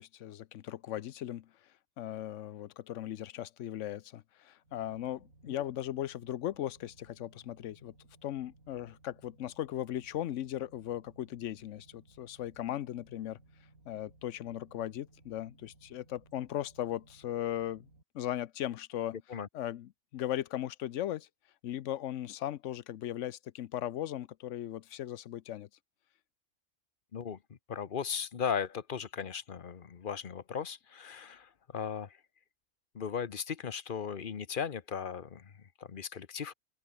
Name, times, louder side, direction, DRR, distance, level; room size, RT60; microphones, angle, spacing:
voice 1, 0.0-1.5 2.0-7.9 8.2-13.4 13.9-17.9 18.1-19.2 19.5-21.3 21.6-25.7, left 12 dB, 65° left, 0.9 m, -38 dB
sound 1, 4.6-18.0, right 2 dB, 75° right, 5.1 m, -62 dB
voice 2, 27.1-32.2 32.9-36.5, left 7 dB, 40° left, 1.0 m, -37 dB
open air
omnidirectional pair, 1.5 m